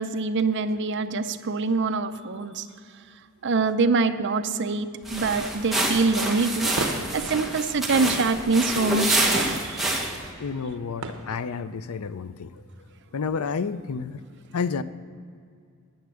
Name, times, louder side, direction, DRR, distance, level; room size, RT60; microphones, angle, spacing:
voice 1, 0.0-2.7 3.4-6.7 7.1-10.1, right 3 dB, 55° right, 10 dB, 0.6 m, -25 dB
sound 1, 5.0-10.3, right 1 dB, ahead, 1.3 m, -27 dB
sound 2, 6.2-11.9, right 3 dB, 70° right, 0.9 m, -40 dB
voice 2, 10.4-12.6 13.1-14.2 14.5-14.8, left 5 dB, 85° left, 14 dB, 0.5 m, -30 dB
10.0 x 9.5 x 6.3 m, 2.3 s
head